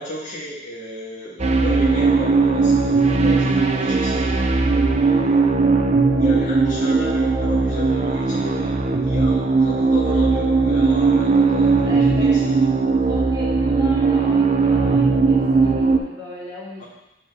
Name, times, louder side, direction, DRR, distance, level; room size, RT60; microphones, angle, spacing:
voice 1, 0.0-4.2 4.9-5.5 6.0-12.7 16.8-16.9, left 2 dB, 40° left, -6 dB, 2.0 m, -34 dB
sound 1, 1.4-16.0, right 4 dB, 35° right, 0.5 m, -18 dB
voice 2, 11.8-12.4 13.0-16.9, equal, 20° right, -12 dB, 1.9 m, -36 dB
4.9 x 4.6 x 6.1 m, 0.94 s
head